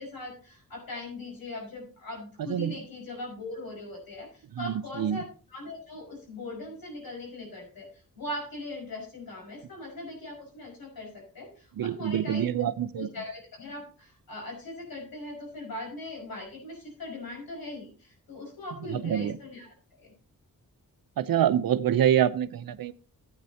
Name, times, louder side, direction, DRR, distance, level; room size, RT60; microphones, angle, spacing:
voice 1, 0.0-12.4 13.0-20.1, left 2 dB, 80° left, 1 dB, 5.6 m, -40 dB
voice 2, 4.6-5.2 11.8-13.1 18.8-19.4 21.2-22.9, right 10 dB, 75° right, 14 dB, 0.7 m, -26 dB
15.5 x 8.8 x 2.8 m, 0.38 s
wide cardioid pair, 110°, 35 cm